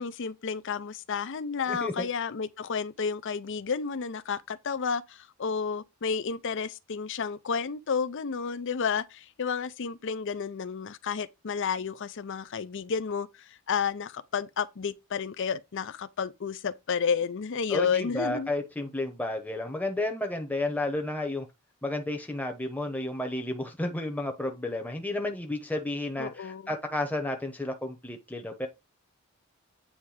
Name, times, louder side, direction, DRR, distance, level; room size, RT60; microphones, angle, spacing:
voice 1, 0.0-18.5 26.2-26.7, left 6 dB, 60° left, 0.5 m, -31 dB
voice 2, 1.7-2.0 17.7-21.5 21.8-28.7, left 2 dB, 10° left, 0.9 m, -32 dB
8.7 x 3.3 x 4.9 m
head